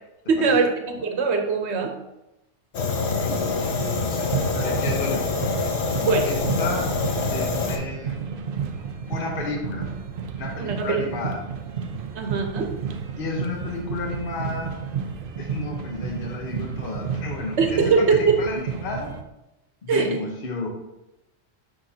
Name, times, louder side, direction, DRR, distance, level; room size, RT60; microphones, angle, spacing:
voice 1, 0.3-1.9 6.0-6.3 10.6-11.0 12.2-12.7 17.6-18.4 19.9-20.2, right 5 dB, 75° right, 4 dB, 1.1 m, -21 dB
Fire, 2.7-7.8, left 4 dB, 70° left, 1.0 m, -25 dB
voice 2, 2.9-5.2 6.2-6.8 7.3-8.2 9.1-9.9 10.3-11.4 13.2-14.7 15.4-19.1 19.8-20.7, left 3 dB, 55° left, 0 dB, 1.1 m, -32 dB
sound 1, 3.6-19.2, right 6 dB, 60° right, 0.7 m, -32 dB
6.4 x 5.5 x 2.8 m, 0.94 s
omnidirectional pair, 1.2 m